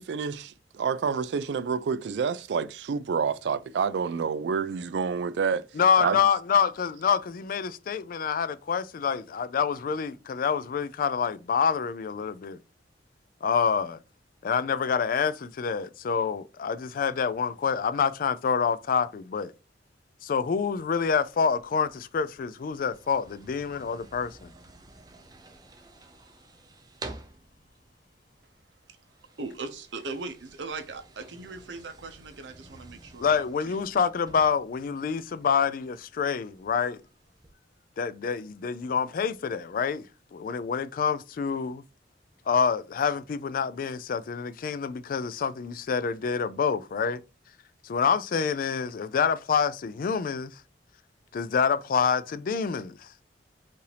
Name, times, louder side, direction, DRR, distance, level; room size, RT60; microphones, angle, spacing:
voice 1, 0.0-5.7 6.0-6.2, right 6 dB, 70° right, 0.3 m, -28 dB
voice 2, 5.8-12.6 13.4-14.0 14.4-19.5 20.2-24.5 33.2-37.0 38.0-40.0 40.3-41.8 42.5-47.2 47.8-50.5 51.3-53.1, left 6 dB, 50° left, 0.3 m, -27 dB
sound 1, 20.5-37.5, right 2 dB, 20° right, 0.6 m, -51 dB
voice 3, 29.4-33.4 33.6-33.9, right 3 dB, 85° right, 0.8 m, -39 dB
5.4 x 2.6 x 3.3 m
head